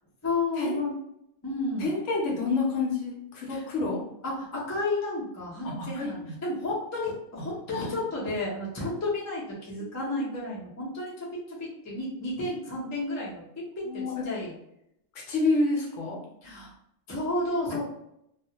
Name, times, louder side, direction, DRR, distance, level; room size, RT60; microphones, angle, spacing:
voice 1, 0.2-0.9 1.4-1.9 3.5-3.6 4.2-13.4 13.8-14.5 16.4-16.7 17.1-17.8, left 2 dB, 20° left, -6 dB, 0.4 m, -32 dB
voice 2, 1.8-4.0 5.6-6.3 7.7-7.9 10.1-10.2 13.8-14.1 15.3-16.2, left 3 dB, 70° left, -1 dB, 0.9 m, -28 dB
2.3 x 2.1 x 2.7 m, 0.79 s
omnidirectional pair, 1.4 m